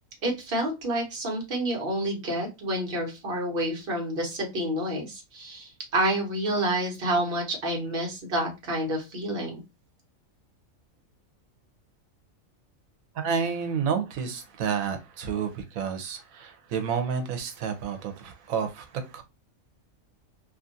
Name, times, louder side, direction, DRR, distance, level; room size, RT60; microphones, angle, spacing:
voice 1, 0.2-9.6, right 1 dB, 45° right, 1.2 m, -29 dB
voice 2, 13.1-19.2, right 6 dB, 90° right, 1.1 m, -30 dB
2.9 x 2.5 x 2.5 m
omnidirectional pair, 1.4 m